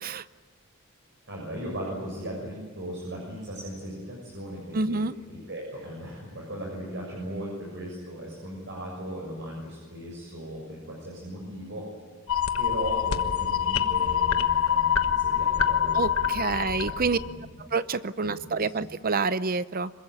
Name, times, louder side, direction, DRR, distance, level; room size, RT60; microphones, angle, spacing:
voice 1, 1.3-5.0 5.3-11.9 12.6-16.1 16.4-17.5 18.2-18.8, equal, 60° right, -2 dB, 7.0 m, -37 dB
voice 2, 4.7-5.1 15.9-17.2 17.6-19.9, right 4 dB, 45° right, 14 dB, 0.7 m, -28 dB
sound 1, 12.3-17.3, left 8 dB, 85° left, 1.3 m, -25 dB
26.0 x 22.5 x 9.4 m, 1.4 s
head